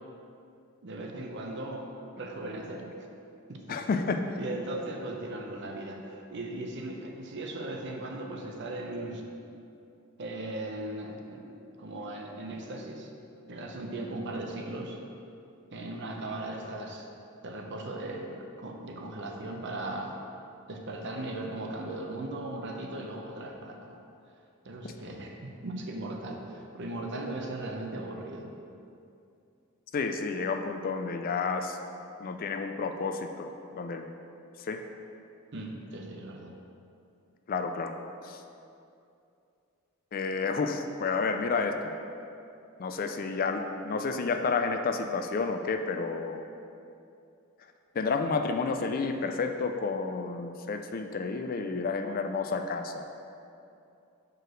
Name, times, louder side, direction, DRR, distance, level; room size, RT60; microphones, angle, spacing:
voice 1, 0.8-1.9 2.2-2.9 3.5-3.8 4.1-9.2 10.2-13.1 13.5-15.0 15.7-17.1 17.4-20.2 20.7-24.0 24.6-28.5 35.5-36.5, right 2 dB, 55° right, 2 dB, 0.7 m, -38 dB
voice 2, 3.7-4.3 29.9-31.8 32.2-34.1 34.6-34.8 37.5-37.9 38.2-38.4 40.1-41.9 42.8-46.4 47.9-53.1, left 4 dB, 40° left, 6 dB, 0.4 m, -30 dB
4.9 x 4.7 x 6.2 m, 2.6 s
head